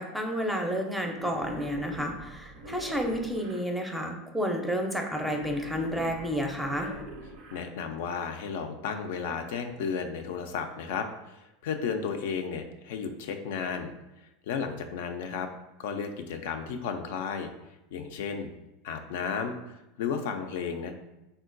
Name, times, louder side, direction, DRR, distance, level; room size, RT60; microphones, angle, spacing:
voice 1, 0.0-6.9, equal, 5° right, 2 dB, 0.4 m, -31 dB
Wild animals, 1.1-3.6 5.1-7.6, right 1 dB, 65° right, 0.5 m, -42 dB
voice 2, 7.5-13.9 14.5-15.5 15.8-17.5 17.9-18.5 18.8-20.9, left 6 dB, 80° left, 6 dB, 0.3 m, -33 dB
3.7 x 2.1 x 2.5 m, 0.97 s
supercardioid pair, 125°, 0 cm